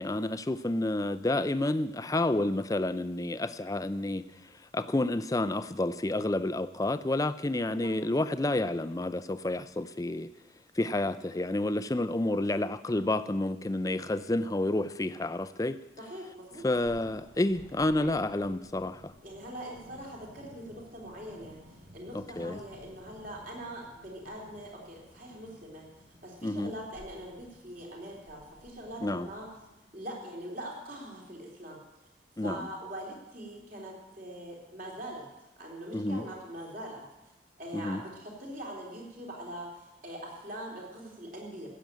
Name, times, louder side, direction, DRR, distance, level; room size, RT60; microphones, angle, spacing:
voice 1, 0.0-4.2 4.7-10.3 10.8-15.8 16.6-19.1 22.1-22.6 26.4-26.7 29.0-29.3 32.4-32.7 35.9-36.2 37.7-38.0, left 2 dB, 20° left, 13 dB, 0.4 m, -30 dB
voice 2, 16.0-16.6 18.0-18.1 19.2-25.9 26.2-29.5 29.9-32.1 32.4-35.2 35.6-37.0 37.6-41.7, right 1 dB, 50° right, -1 dB, 3.7 m, -42 dB
Thunder, 16.4-30.0, equal, 80° right, 4.4 m, -55 dB
16.0 x 7.7 x 9.0 m, 1.0 s
head